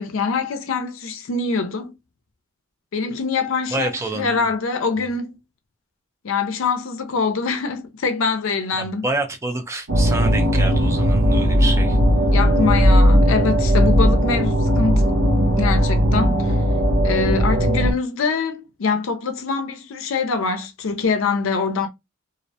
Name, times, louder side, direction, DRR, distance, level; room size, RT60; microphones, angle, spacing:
voice 1, 0.0-1.9 2.9-5.4 6.2-9.1 12.3-15.2 15.6-16.6 17.0-21.9, left 4 dB, 75° left, 0.5 m, -24 dB
voice 2, 3.7-4.5 8.8-12.0, right 2 dB, 15° right, 0.4 m, -28 dB
sound 1, 9.9-17.9, equal, 75° right, 0.5 m, -17 dB
2.4 x 2.1 x 2.6 m
head